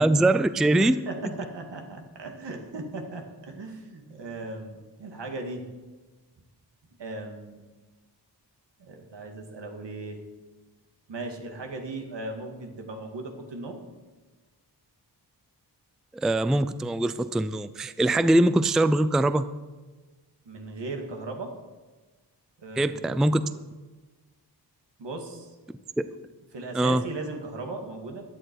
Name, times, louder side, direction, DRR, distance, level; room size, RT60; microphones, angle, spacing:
voice 1, 0.0-1.0 16.1-19.5 22.8-23.4 26.0-26.1 26.7-27.0, right 1 dB, ahead, 13 dB, 0.3 m, -22 dB
voice 2, 0.7-5.6 7.0-7.6 8.8-10.2 11.1-13.9 20.5-21.5 22.6-23.3 25.0-25.5 26.5-28.2, right 2 dB, 80° right, 3 dB, 2.3 m, -37 dB
16.0 x 11.5 x 4.7 m, 1.2 s
wide cardioid pair, 120°, 42 cm